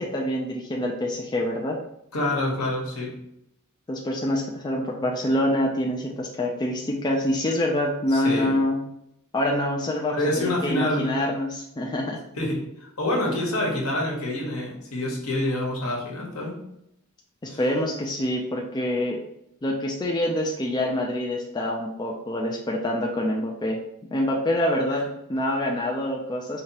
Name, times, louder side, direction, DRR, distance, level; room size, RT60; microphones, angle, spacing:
voice 1, 0.0-1.8 3.9-8.8 9.3-12.2 17.4-19.2 19.6-23.8 24.1-26.6, left 1 dB, 20° left, -1 dB, 0.4 m, -26 dB
voice 2, 2.1-3.2 8.1-8.5 10.1-11.2 12.4-16.6 17.5-17.6, left 1 dB, 75° left, -1 dB, 1.2 m, -27 dB
4.5 x 2.8 x 2.8 m, 0.79 s
head